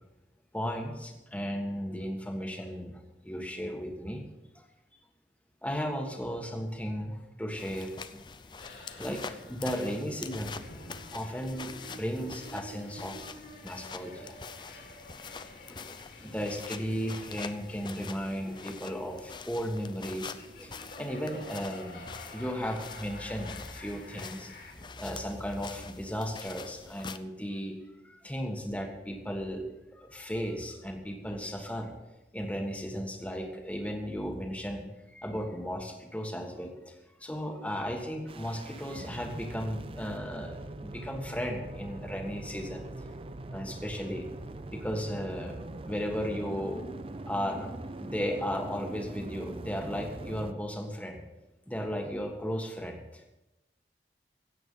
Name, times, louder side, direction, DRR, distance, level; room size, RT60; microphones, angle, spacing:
voice 1, 0.5-4.2 4.5-4.6 5.6-8.2 9.0-10.5 11.1-13.3 13.6-14.4 15.3-15.9 16.2-24.5 25.0-27.8 28.0-29.6 29.9-31.9 32.3-36.9 37.2-42.8 43.5-44.3 44.7-46.8 47.3-47.7 48.0-51.2 51.7-53.3, equal, 10° left, 3 dB, 1.5 m, -35 dB
sound 1, 7.6-27.2, left 5 dB, 25° left, 0.5 m, -45 dB
sound 2, 8.6-24.7, left 1 dB, 60° left, 3.1 m, -49 dB
sound 3, 38.3-50.5, right 2 dB, 30° right, 0.5 m, -42 dB
16.0 x 8.3 x 5.6 m, 1.0 s
head